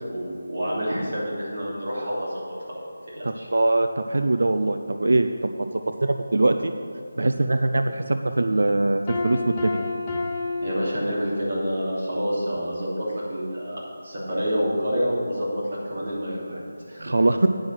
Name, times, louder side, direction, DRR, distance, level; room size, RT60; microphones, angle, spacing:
voice 1, 0.1-2.8 3.1-3.5 10.6-15.6 15.9-17.1, equal, 35° right, -7 dB, 2.8 m, -28 dB
voice 2, 3.2-5.5 5.9-6.7 7.2-9.8 17.0-17.5, right 2 dB, 65° right, 7 dB, 0.5 m, -22 dB
Piano, 9.1-11.6, left 3 dB, 15° left, 0.8 m, -30 dB
9.5 x 6.3 x 7.5 m, 2.5 s
figure-of-eight pair, 180°, 0 cm